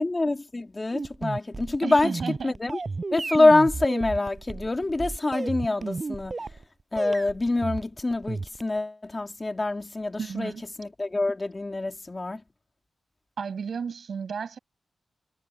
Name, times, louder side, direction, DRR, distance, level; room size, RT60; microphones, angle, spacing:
voice 1, 0.0-2.1 2.4-2.8 3.1-6.3 6.9-10.5 10.8-12.4, left 2 dB, 25° left, 2.3 m, -25 dB
sound 1, 0.9-6.6 7.0-8.8, right 3 dB, 40° right, 5.7 m, -33 dB
voice 2, 1.8-2.5 10.2-10.6 13.4-14.6, right 6 dB, 75° right, 5.7 m, -33 dB
wide cardioid pair, 90°, 0 cm